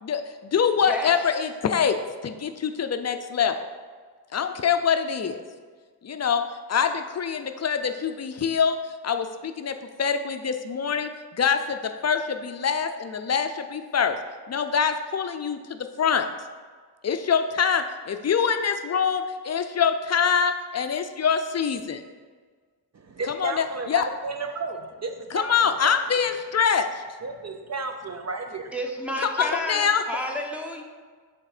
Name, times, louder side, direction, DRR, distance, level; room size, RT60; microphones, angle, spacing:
voice 1, 0.0-2.0 2.2-3.5 4.3-5.4 6.0-6.4 6.7-8.8 9.0-14.2 14.5-16.3 17.0-22.0 23.3-24.1 25.3-27.0 29.2-30.0, left 7 dB, 40° left, 8 dB, 0.4 m, -25 dB
voice 2, 22.9-26.2 27.2-28.7, right 3 dB, 40° right, 5 dB, 0.4 m, -33 dB
voice 3, 28.7-30.8, equal, 5° right, 0 dB, 0.7 m, -30 dB
7.2 x 3.6 x 4.9 m, 1.5 s
wide cardioid pair, 125°, 42 cm